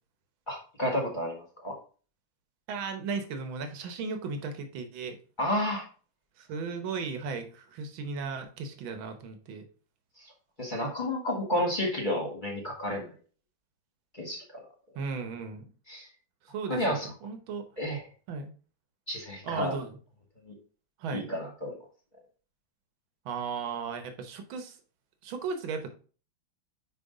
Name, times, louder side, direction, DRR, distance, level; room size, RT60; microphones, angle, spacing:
voice 1, 0.5-1.8 5.4-5.8 10.2-10.3 10.6-13.1 14.1-14.6 15.9-16.1 16.7-17.1 17.8-18.0 19.1-19.7 20.4-20.5 21.1-21.8, left 1 dB, 25° left, -1 dB, 1.4 m, -31 dB
voice 2, 2.7-5.2 6.4-9.6 14.9-15.6 16.4-17.6 18.3-18.5 19.4-20.0 21.0-21.2 23.2-24.8 25.2-25.9, right 5 dB, 75° right, 7 dB, 1.8 m, -36 dB
5.5 x 5.1 x 3.8 m, 0.38 s
omnidirectional pair, 2.2 m